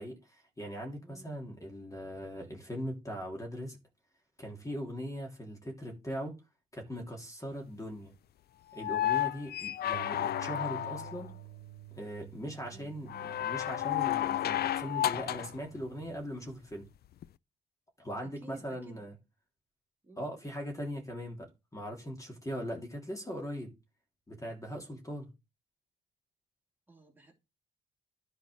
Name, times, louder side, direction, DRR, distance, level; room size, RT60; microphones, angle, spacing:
voice 1, 0.0-3.8 4.4-6.4 6.7-8.1 8.7-11.3 11.9-16.9 18.0-19.1 20.2-23.7 24.3-25.3, equal, 15° left, 3.1 m, -40 dB
sound 1, 8.7-11.3 13.1-15.6 17.2-17.3, left 12 dB, 55° left, 0.4 m, -32 dB
Bass guitar, 9.9-16.2, right 16 dB, 80° right, 0.6 m, -51 dB
voice 2, 18.2-19.0 20.0-20.4 26.9-27.3, right 2 dB, 10° right, 2.9 m, -53 dB
10.5 x 4.4 x 6.2 m
cardioid pair, 90°, 20 cm